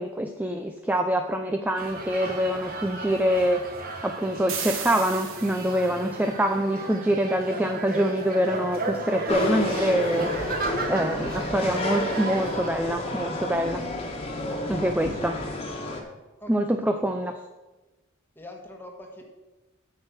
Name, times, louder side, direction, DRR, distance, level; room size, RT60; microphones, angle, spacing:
voice 1, 0.0-3.6 4.0-10.3 10.9-13.8 14.7-15.4 16.5-17.3, equal, 10° right, 5 dB, 0.4 m, -25 dB
sound 1, 1.8-12.7, right 3 dB, 45° right, 1.2 m, -35 dB
sound 2, 4.5-6.0, right 7 dB, 80° right, 1.3 m, -35 dB
sound 3, 9.3-16.0, left 1 dB, 30° left, 1.5 m, -30 dB
voice 2, 16.4-17.1 18.3-19.2, left 1 dB, 10° left, 2 dB, 1.4 m, -44 dB
8.5 x 6.3 x 6.6 m, 1.1 s
head